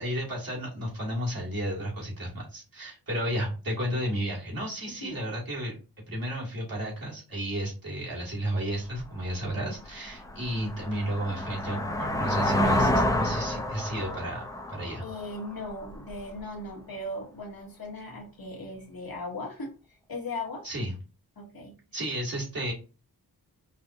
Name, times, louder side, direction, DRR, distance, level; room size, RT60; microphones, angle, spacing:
voice 1, 0.0-15.0 20.6-20.9 21.9-22.7, equal, 60° right, -5 dB, 2.0 m, -33 dB
voice 2, 4.8-5.2 15.0-19.7 20.1-20.6 21.4-21.7, left 2 dB, 60° left, 0 dB, 1.2 m, -38 dB
sound 1, 9.0-9.1 9.6-16.2, left 1 dB, 10° left, 0.5 m, -29 dB
5.3 x 2.2 x 2.6 m, 0.33 s
wide cardioid pair, 85°, 39 cm